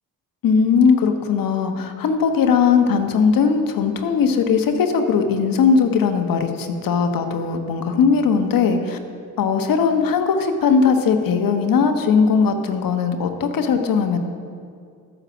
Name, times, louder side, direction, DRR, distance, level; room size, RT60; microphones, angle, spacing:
voice 1, 0.4-9.0 9.4-14.2, left 5 dB, 55° left, 6 dB, 1.3 m, -19 dB
12.0 x 7.5 x 6.2 m, 2.3 s
hypercardioid pair, 45°, 42 cm